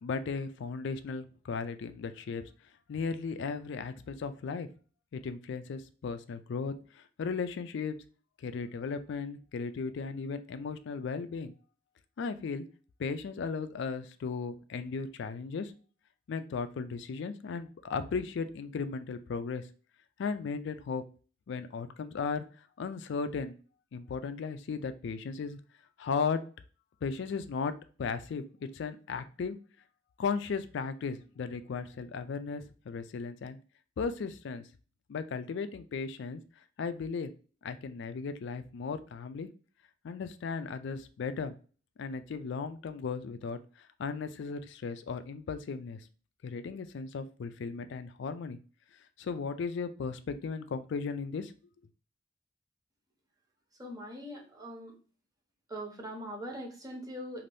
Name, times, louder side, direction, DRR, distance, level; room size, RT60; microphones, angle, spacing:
voice 1, 0.0-2.4 2.9-4.7 5.1-8.0 8.4-11.5 12.2-12.6 13.0-15.7 16.3-19.6 20.2-21.0 21.5-22.4 22.8-23.5 23.9-25.6 26.0-26.4 27.0-27.7 28.0-29.6 30.2-33.6 34.0-34.6 35.1-36.4 36.8-37.3 37.6-39.5 40.0-41.5 42.0-46.0 46.4-48.6 49.2-51.5, left 5 dB, 65° left, 10 dB, 0.3 m, -36 dB
voice 2, 53.8-54.9 55.7-57.5, equal, 20° right, 0 dB, 0.8 m, -41 dB
2.6 x 2.5 x 3.3 m, 0.38 s
head